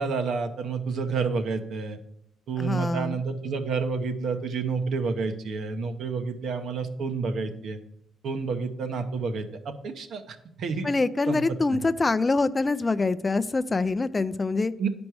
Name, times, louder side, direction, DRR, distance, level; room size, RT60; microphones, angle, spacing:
voice 1, 0.0-2.0 2.5-7.8 8.2-10.9 11.3-11.4 14.8-14.9, right 5 dB, 70° right, 7 dB, 0.9 m, -29 dB
voice 2, 2.6-3.2 10.8-14.7, left 3 dB, 25° left, 14 dB, 0.4 m, -25 dB
9.5 x 5.2 x 4.7 m, 0.77 s
cardioid pair, 90°, 0 cm